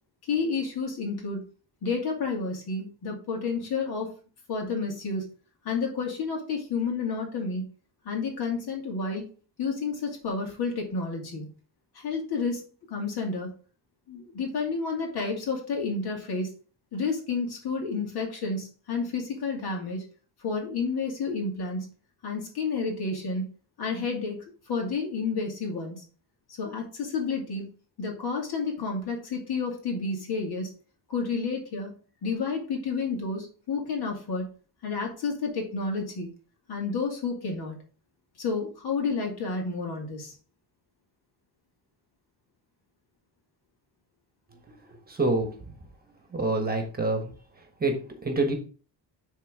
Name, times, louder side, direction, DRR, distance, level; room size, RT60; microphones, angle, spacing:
voice 1, 0.3-1.4 1.8-4.1 4.5-5.2 5.6-7.6 8.0-9.2 9.6-11.5 11.9-12.6 12.9-13.5 14.1-16.5 16.9-20.0 20.4-21.9 22.2-23.5 23.8-26.0 26.6-27.7 28.0-30.7 31.1-31.9 32.2-34.5 34.8-36.3 36.7-37.7 38.4-40.4, left 4 dB, 60° left, 1 dB, 2.5 m, -30 dB
voice 2, 46.3-47.2 47.8-47.9 48.2-48.5, right 2 dB, 20° right, 4 dB, 1.3 m, -25 dB
10.0 x 3.8 x 3.7 m, 0.38 s
cardioid pair, 150°, 43 cm